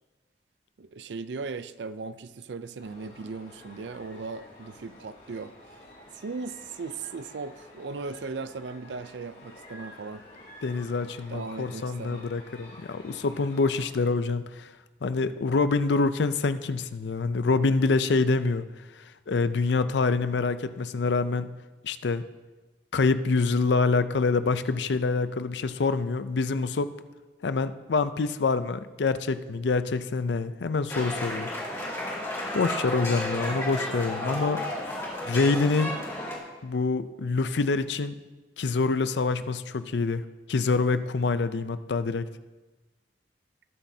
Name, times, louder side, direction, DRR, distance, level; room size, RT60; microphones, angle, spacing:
voice 1, 0.8-5.5 6.1-10.2 11.3-12.3, right 4 dB, 85° right, 14 dB, 0.5 m, -37 dB
sound 1, 2.8-13.9, left 1 dB, 60° left, 4.0 m, -50 dB
voice 2, 10.6-14.7 15.0-18.7 18.9-21.5 21.8-22.3 22.9-26.9 27.4-31.8 32.5-34.8 35.2-36.0 36.6-38.1 38.6-42.3, left 4 dB, 80° left, 13 dB, 0.5 m, -26 dB
sound 2, 30.9-36.4, left 1 dB, 15° left, 2.4 m, -32 dB
19.5 x 7.3 x 2.8 m, 1.2 s
head